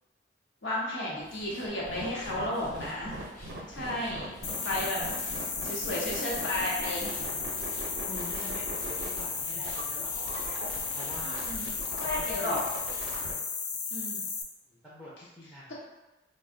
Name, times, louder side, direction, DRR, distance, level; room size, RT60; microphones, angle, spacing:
voice 1, 0.6-3.2 3.7-4.3 4.6-5.0 5.6-7.1 11.2-12.6 13.9-14.2, left 1 dB, 80° left, -4 dB, 0.8 m, -33 dB
sound 1, 1.2-13.3, equal, 45° left, 0.9 m, -52 dB
sound 2, 1.7-13.3, right 2 dB, 75° right, 0.5 m, -41 dB
voice 2, 3.7-4.1 5.0-5.1 7.1-7.6 8.1-11.5 12.0-12.8 14.7-15.7, left 1 dB, 5° left, -9 dB, 0.4 m, -47 dB
sound 3, 4.4-14.4, left 5 dB, 65° left, 0.4 m, -34 dB
2.4 x 2.0 x 3.6 m, 1.1 s
head